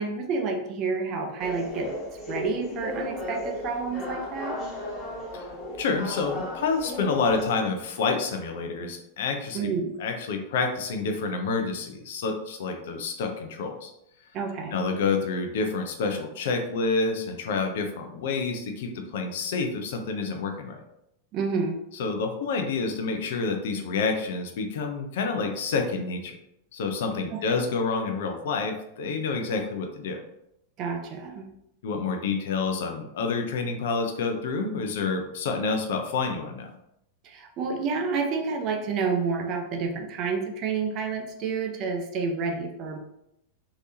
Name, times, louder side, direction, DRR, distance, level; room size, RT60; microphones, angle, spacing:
voice 1, 0.0-1.9 2.3-4.6 9.5-10.0 14.3-14.8 21.3-21.8 27.3-27.6 30.8-31.4 37.2-43.0, right 4 dB, 35° right, 3 dB, 0.6 m, -29 dB
sound 1, 1.4-7.5, left 1 dB, 15° left, 1.4 m, -35 dB
voice 2, 5.8-9.7 10.0-13.9 14.7-20.8 22.0-26.4 26.7-30.2 31.8-36.7, left 4 dB, 55° left, 4 dB, 0.5 m, -28 dB
3.2 x 2.8 x 2.8 m, 0.80 s
figure-of-eight pair, 90°, 0 cm